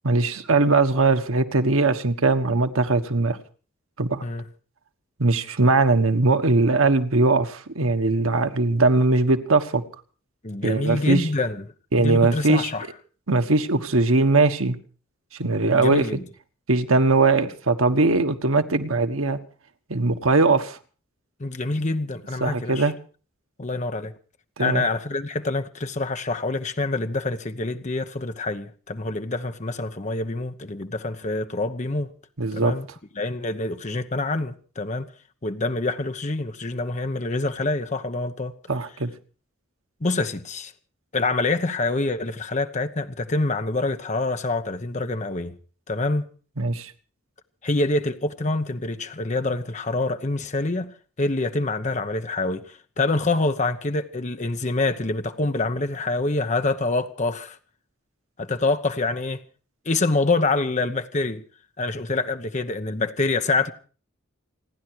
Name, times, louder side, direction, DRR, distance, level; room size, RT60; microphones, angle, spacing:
voice 1, 0.0-3.4 4.0-4.2 5.2-9.8 10.6-11.3 11.9-12.7 13.3-14.8 15.4-16.1 16.7-19.4 19.9-20.8 22.4-22.9 24.6-24.8 32.4-32.7 38.7-39.1 46.6-46.9, right 3 dB, 85° right, 1.4 m, -20 dB
voice 2, 10.4-11.6 12.0-12.9 15.7-16.2 21.4-22.9 23.6-24.1 24.6-32.1 32.5-32.9 33.2-35.1 35.4-38.5 40.0-40.7 41.1-45.5 45.9-46.3 47.6-57.6 58.4-59.4 59.8-61.4 61.8-63.7, left 2 dB, 35° left, 0.9 m, -26 dB
28.5 x 10.5 x 4.7 m
head